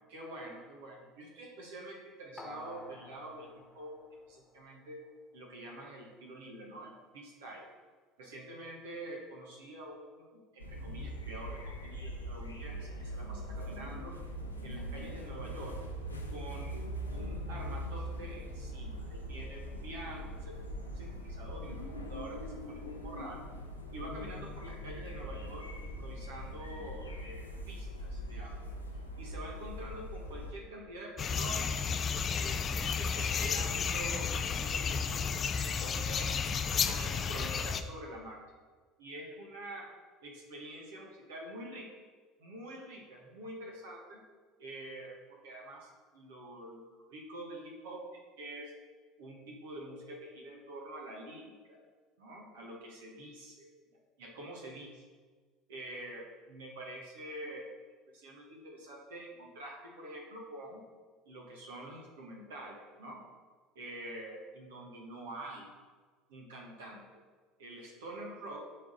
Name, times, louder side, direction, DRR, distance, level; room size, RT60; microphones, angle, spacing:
voice 1, 0.1-3.9 4.3-5.0 5.3-7.7 8.2-14.1 14.6-15.8 16.3-16.8 17.1-20.5 20.8-23.4 23.9-28.6 29.2-31.8 32.4-36.2 36.8-38.4 39.0-39.9 40.2-41.9 42.4-44.2 44.6-45.2 45.4-48.7 49.2-51.8 52.2-55.0 55.7-57.7 58.1-60.8 61.2-63.2 63.7-65.7 66.3-67.2 67.6-68.7, right 1 dB, 65° right, -1 dB, 1.6 m, -46 dB
sound 1, 2.4-4.9 5.3-5.4, left 2 dB, 20° left, 1.4 m, -51 dB
sound 2, 10.6-30.5, equal, 85° left, 0.8 m, -41 dB
sound 3, 31.2-37.8, left 6 dB, 35° left, 0.5 m, -32 dB
8.2 x 4.6 x 6.8 m, 1.5 s
figure-of-eight pair, 65°, 0 cm